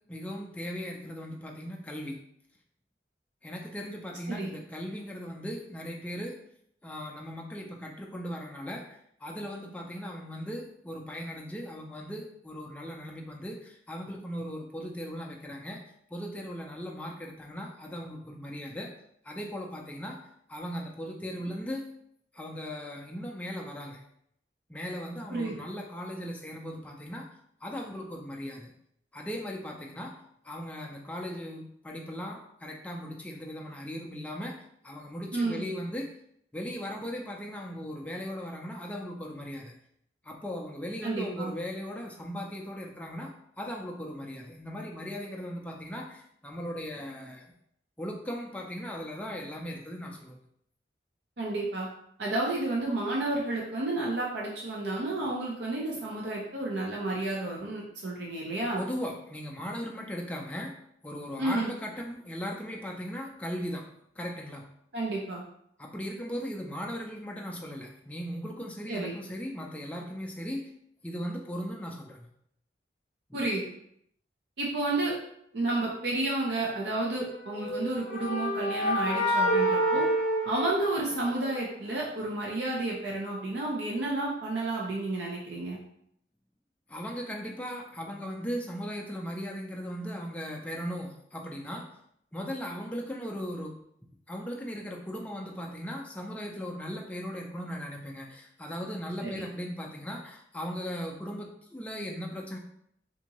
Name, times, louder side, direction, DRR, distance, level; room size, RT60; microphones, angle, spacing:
voice 1, 0.1-2.2 3.4-6.3 6.8-8.8 9.2-15.8 16.1-18.9 19.2-20.2 20.5-21.8 22.3-24.0 24.7-27.3 27.6-28.7 29.1-30.1 30.4-34.5 34.8-36.1 36.5-39.7 40.2-43.3 43.6-47.5 48.0-50.4 58.8-60.7 61.0-63.8 64.2-64.7 65.8-70.6 71.0-72.3 73.3-73.4 86.9-91.9 92.3-93.7 94.3-102.6, equal, 10° left, 0 dB, 0.3 m, -38 dB
voice 2, 35.3-35.7 41.0-41.5 51.4-51.9 52.2-58.8 61.4-61.7 64.9-65.4 68.9-69.2 73.3-73.6 74.6-75.1 75.5-80.1 80.4-85.8 99.2-99.5, right 2 dB, 75° right, -3 dB, 0.6 m, -31 dB
sound 1, 77.6-81.5, equal, 55° left, 0.6 m, -28 dB
3.6 x 2.6 x 2.9 m, 0.71 s
head